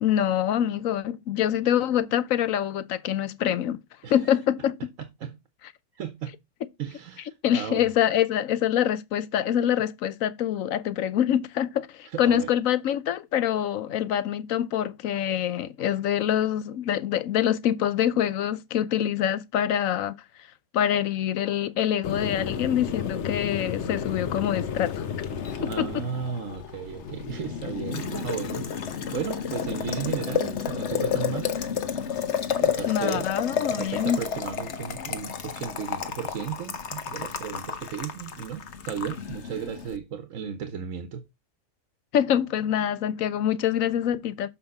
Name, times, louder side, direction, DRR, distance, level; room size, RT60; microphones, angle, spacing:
voice 1, 0.0-3.8 4.1-4.8 7.4-20.2 20.7-25.1 25.6-26.0 32.9-34.2 42.1-44.5, left 10 dB, 80° left, 1.1 m, -25 dB
voice 2, 4.0-4.4 5.0-5.4 5.9-6.3 6.8-7.9 12.0-12.5 25.6-31.6 32.6-33.3 33.6-41.2, right 7 dB, 75° right, 1.3 m, -35 dB
Boiling, 22.0-40.0, left 7 dB, 60° left, 1.2 m, -31 dB
7.2 x 5.5 x 4.0 m
omnidirectional pair, 1.4 m